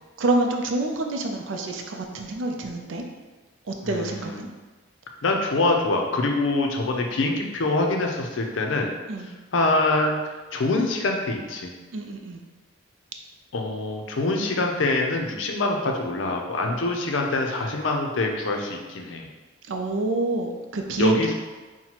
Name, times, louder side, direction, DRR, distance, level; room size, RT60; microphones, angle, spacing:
voice 1, 0.2-3.0 3.7-4.5 9.1-9.4 11.9-12.4 19.7-21.3, right 2 dB, 80° right, 3 dB, 0.4 m, -27 dB
voice 2, 3.8-4.4 5.2-8.9 9.5-10.2 10.5-11.7 13.5-19.2 21.0-21.3, left 2 dB, 80° left, 2 dB, 0.5 m, -25 dB
5.6 x 2.2 x 2.9 m, 1.3 s
head